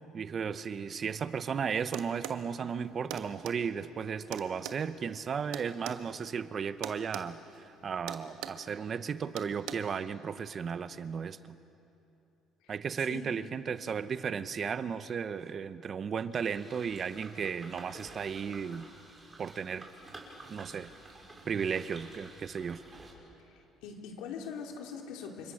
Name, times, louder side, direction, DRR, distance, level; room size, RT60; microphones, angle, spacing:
voice 1, 0.1-11.4 12.7-18.9 19.4-19.9 20.5-20.9 21.5-22.8, right 6 dB, 40° right, 13 dB, 0.9 m, -35 dB
sound 1, 1.9-2.4 3.1-3.6 4.3-6.0 6.8-7.3 7.5-7.7 8.1-8.6 9.4-9.7, right 12 dB, 85° right, 1.5 m, -40 dB
voice 2, 12.6-13.2 23.4-25.5, left 6 dB, 85° left, 1 dB, 3.8 m, -43 dB
sound 2, 16.3-23.1, right 2 dB, 25° right, 5.5 m, -51 dB
30.0 x 26.5 x 6.5 m, 2.9 s
cardioid pair, 110°, 0 cm